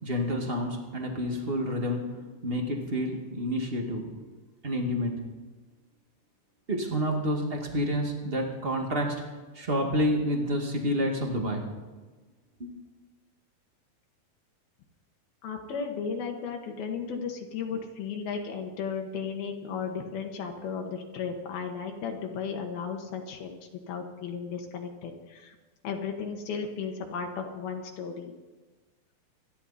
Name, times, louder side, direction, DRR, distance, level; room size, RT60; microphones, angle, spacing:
voice 1, 0.0-4.1 4.6-5.1 6.7-9.2 9.5-11.6 12.6-12.7, equal, 25° right, 1 dB, 1.2 m, -29 dB
voice 2, 15.4-23.5 23.9-25.6 25.8-28.3, left 6 dB, 75° left, 2 dB, 3.1 m, -35 dB
26.0 x 11.0 x 4.2 m, 1.3 s
omnidirectional pair, 4.4 m